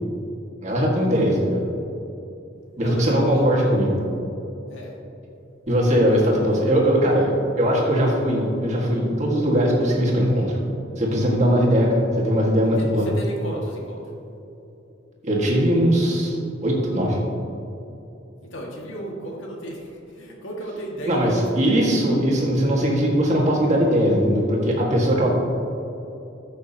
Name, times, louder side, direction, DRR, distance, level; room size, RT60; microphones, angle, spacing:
voice 1, 0.6-1.6 2.8-3.9 5.7-10.5 11.0-13.1 15.2-17.2 21.1-25.3, equal, 35° right, -3 dB, 1.7 m, -20 dB
voice 2, 2.8-3.7 4.7-4.9 6.1-6.4 12.8-14.0 18.5-21.8 25.3-25.4, right 1 dB, 75° left, -2 dB, 1.9 m, -34 dB
14.0 x 6.3 x 2.9 m, 2.9 s
head